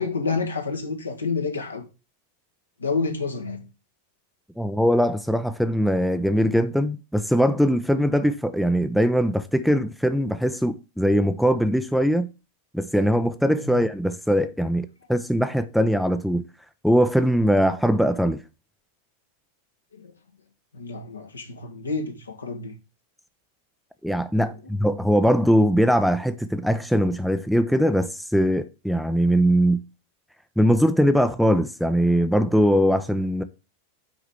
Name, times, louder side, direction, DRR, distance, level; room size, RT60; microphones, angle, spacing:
voice 1, 0.0-1.8 2.8-3.6 13.6-13.8 19.9-20.1 20.7-22.7 24.4-24.5, left 4 dB, 75° left, 1.7 m, -29 dB
voice 2, 4.6-12.3 12.7-16.4 16.8-18.4 24.0-29.8 30.6-33.4, equal, ahead, 0.6 m, -21 dB
6.2 x 4.9 x 5.9 m
figure-of-eight pair, 90°, 0 cm